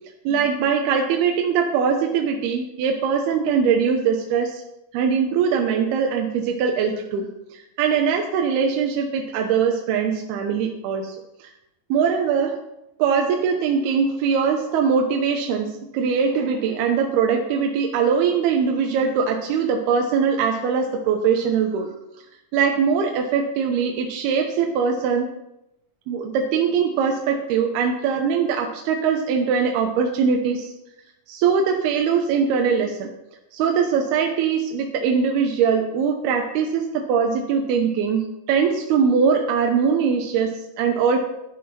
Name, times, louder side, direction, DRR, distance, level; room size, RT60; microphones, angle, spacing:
voice 1, 0.3-4.6 4.9-11.2 11.4-11.5 11.9-12.6 13.0-21.9 22.5-25.3 26.1-30.7 31.3-33.1 33.5-41.2, right 6 dB, 85° right, 2 dB, 2.9 m, -21 dB
11.5 x 11.5 x 4.4 m, 0.88 s
omnidirectional pair, 4.4 m